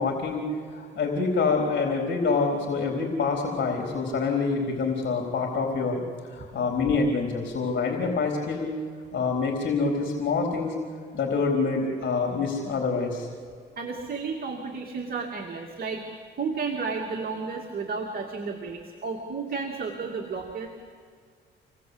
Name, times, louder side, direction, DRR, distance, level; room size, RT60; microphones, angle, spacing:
voice 1, 0.0-6.0 6.3-8.7 9.1-10.7 11.1-13.3, left 4 dB, 60° left, 1 dB, 4.1 m, -26 dB
voice 2, 13.8-16.0 16.4-20.7, right 4 dB, 50° right, 1 dB, 2.7 m, -32 dB
27.5 x 18.5 x 8.2 m, 2.1 s
cardioid pair, 90°, 20 cm